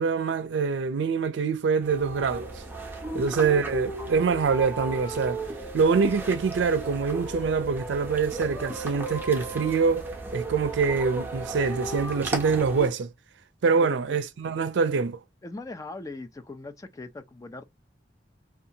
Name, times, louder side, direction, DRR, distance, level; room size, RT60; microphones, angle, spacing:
voice 1, 0.0-2.6 3.1-5.4 5.7-10.1 10.3-13.1 13.6-15.2, right 5 dB, 90° right, 0.4 m, -25 dB
sound 1, 1.8-12.9, right 2 dB, 10° right, 0.8 m, -35 dB
voice 2, 13.8-14.2 15.4-17.6, left 3 dB, 20° left, 0.4 m, -40 dB
2.7 x 2.3 x 2.7 m
head